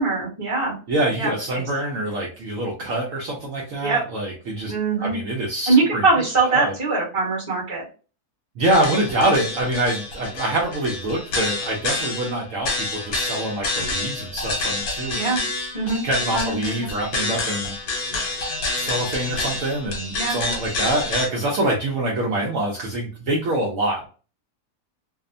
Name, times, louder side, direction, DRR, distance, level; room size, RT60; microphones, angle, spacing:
voice 1, 0.0-0.8 1.2-1.3 3.8-4.0 4.7-5.2 5.7-7.8 15.1-15.4 15.7-16.0 16.3-16.9 20.1-20.4, right 3 dB, 25° right, -3 dB, 0.9 m, -22 dB
voice 2, 0.9-4.7 5.0-6.7 8.6-15.2 16.0-17.7 18.7-24.0, right 1 dB, 65° right, -2 dB, 0.9 m, -25 dB
sound 1, 8.6-21.3, left 2 dB, 70° left, 1.2 m, -28 dB
2.7 x 2.1 x 2.5 m, 0.37 s
omnidirectional pair, 1.6 m